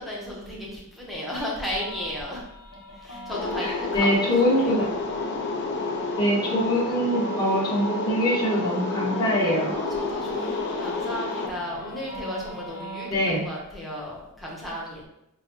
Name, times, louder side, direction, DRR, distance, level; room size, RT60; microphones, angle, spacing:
voice 1, 0.0-2.5 2.9-5.0 9.7-15.0, equal, ahead, -5 dB, 0.9 m, -34 dB
sound 1, 1.7-13.4, equal, 75° left, 0.9 m, -40 dB
sound 2, 3.3-11.5, left 3 dB, 50° left, 0.5 m, -30 dB
voice 2, 3.6-4.8 6.2-9.7 13.1-13.4, equal, 20° left, -8 dB, 1.4 m, -23 dB
6.1 x 2.3 x 2.9 m, 0.84 s
head